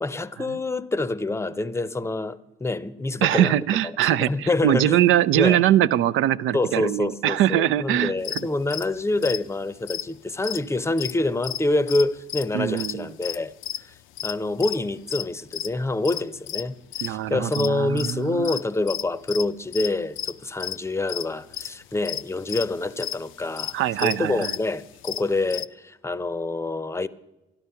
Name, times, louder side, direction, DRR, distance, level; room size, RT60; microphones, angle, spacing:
voice 1, 0.0-3.6 4.0-5.0 5.3-5.6 6.5-13.5 13.8-13.9 14.2-23.7 24.0-27.1, left 2 dB, 15° left, 0.6 m, -26 dB
voice 2, 3.2-8.1 12.5-13.1 17.0-18.6 23.7-24.6, right 12 dB, 85° right, 0.5 m, -22 dB
sound 1, 8.2-11.6 11.9-17.1 17.5-19.9 20.2-20.3 20.6-20.8 21.1-25.7, left 12 dB, 80° left, 0.5 m, -33 dB
13.0 x 12.0 x 5.7 m
cardioid pair, 90°, 20 cm